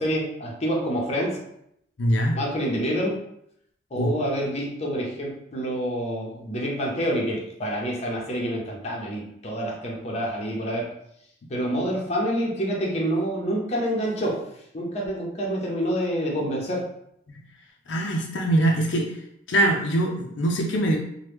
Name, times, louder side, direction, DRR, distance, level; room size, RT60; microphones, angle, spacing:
voice 1, 0.0-1.4 2.3-3.2 3.9-10.9 11.5-14.4 14.7-16.8, equal, 35° left, -2 dB, 0.8 m, -27 dB
voice 2, 2.0-2.4 4.0-4.1 17.3-17.4 17.9-19.2 19.5-21.0, right 1 dB, 85° left, 0 dB, 0.5 m, -23 dB
3.0 x 2.2 x 3.4 m, 0.74 s
head